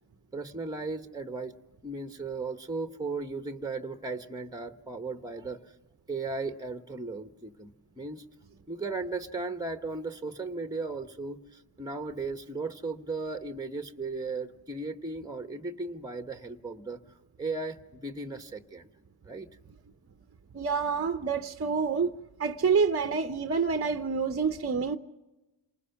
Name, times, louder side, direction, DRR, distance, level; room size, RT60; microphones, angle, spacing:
voice 1, 0.3-1.5 1.8-5.7 6.1-8.2 8.7-17.0 17.4-18.9 19.2-19.5, right 3 dB, 10° right, 1.2 m, -36 dB
voice 2, 20.5-22.1 22.4-25.0, right 5 dB, 30° right, 0.9 m, -27 dB
28.0 x 19.5 x 5.8 m
cardioid pair, 70°, 46 cm